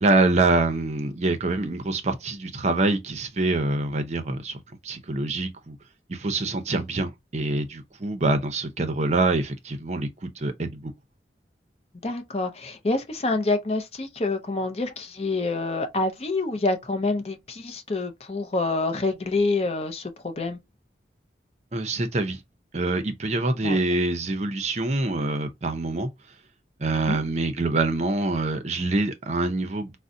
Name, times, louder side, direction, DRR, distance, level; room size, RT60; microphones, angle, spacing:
voice 1, 0.0-4.6 4.8-5.8 6.1-10.1 10.4-10.9 21.7-22.4 22.7-26.1 26.8-29.9, right 2 dB, 40° right, 0.6 m, -25 dB
voice 2, 12.0-20.6 23.6-23.8 27.1-27.2, left 3 dB, 35° left, 0.6 m, -27 dB
3.8 x 2.1 x 2.6 m
head